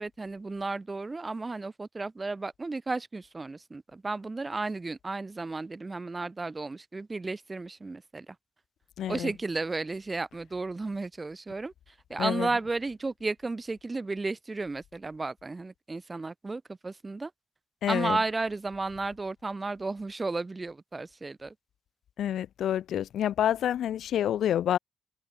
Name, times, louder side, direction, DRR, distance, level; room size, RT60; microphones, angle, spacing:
voice 1, 0.0-8.4 9.1-17.3 17.9-21.5, right 3 dB, 30° right, 2.5 m, -33 dB
voice 2, 9.0-9.3 12.2-12.5 17.8-18.2 22.2-24.8, left 10 dB, 70° left, 1.0 m, -28 dB
hypercardioid pair, 50°, 0 cm